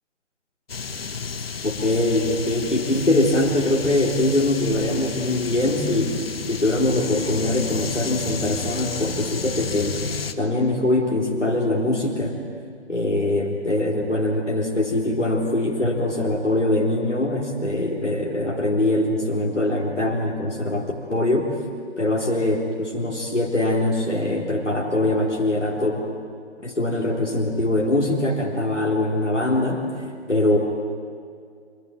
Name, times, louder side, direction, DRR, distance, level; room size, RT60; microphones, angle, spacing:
sound 1, 0.7-10.3, left 5 dB, 55° left, 1.6 m, -31 dB
voice 1, 1.6-6.2 6.5-10.0 10.4-12.4 12.9-21.6 22.0-26.0 26.6-29.9 30.3-30.6, left 1 dB, 80° left, -2 dB, 3.8 m, -22 dB
24.5 x 24.5 x 9.1 m, 2.2 s
figure-of-eight pair, 140°, 35 cm